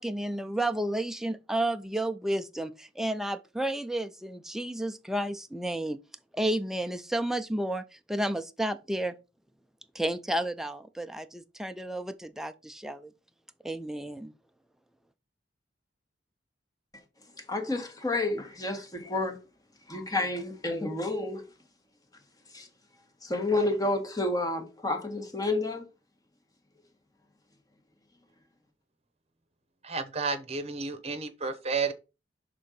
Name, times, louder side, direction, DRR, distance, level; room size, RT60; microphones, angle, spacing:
voice 1, 0.0-6.0 6.3-9.1 9.9-13.1 13.6-14.3, right 1 dB, ahead, 0.4 m, -31 dB
voice 2, 17.5-19.4 19.9-21.4 22.5-22.7 23.2-25.8, left 2 dB, 20° left, 1.2 m, -30 dB
voice 3, 29.8-31.9, right 4 dB, 35° right, 0.9 m, -31 dB
6.2 x 3.7 x 5.2 m
head